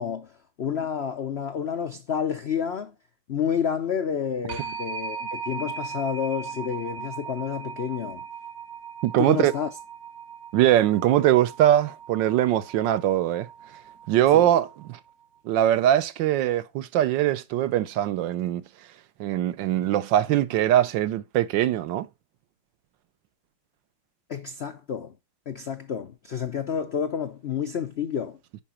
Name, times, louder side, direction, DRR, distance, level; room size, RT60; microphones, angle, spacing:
voice 1, 0.0-2.9 3.3-8.3 9.2-9.7 14.3-14.5 24.3-25.1 25.5-28.4, left 7 dB, 85° left, 0.5 m, -29 dB
sound 1, 4.5-15.1, right 6 dB, 60° right, 1.1 m, -39 dB
voice 2, 9.0-9.5 10.5-13.5 14.1-15.0 15.4-18.6 19.2-22.1, right 12 dB, 75° right, 1.3 m, -22 dB
10.0 x 4.8 x 4.2 m
omnidirectional pair, 2.1 m